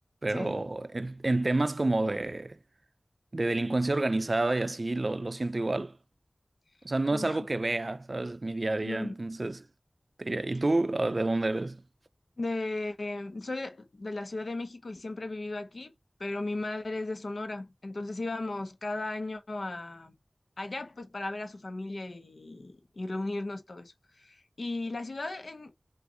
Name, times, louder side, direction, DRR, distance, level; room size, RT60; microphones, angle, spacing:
voice 1, 0.2-2.6 3.3-6.0 6.8-9.6 10.2-11.8, right 2 dB, 55° right, 0.4 m, -29 dB
voice 2, 8.8-9.2 12.4-15.9 16.2-20.1 20.6-25.7, left 2 dB, 85° left, 0.9 m, -36 dB
6.2 x 2.5 x 2.8 m
wide cardioid pair, 55°, 0 cm